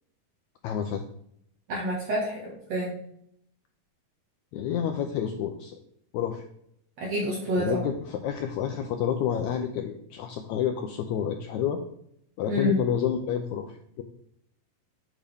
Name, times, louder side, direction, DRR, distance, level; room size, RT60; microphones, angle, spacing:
voice 1, 0.6-1.0 4.5-5.8 6.1-6.4 7.6-11.8 12.4-14.0, left 9 dB, 90° left, 5 dB, 1.6 m, -29 dB
voice 2, 1.7-2.9 7.0-7.8 12.5-12.7, equal, 55° right, -5 dB, 2.6 m, -28 dB
9.0 x 5.0 x 3.5 m, 0.72 s
omnidirectional pair, 4.0 m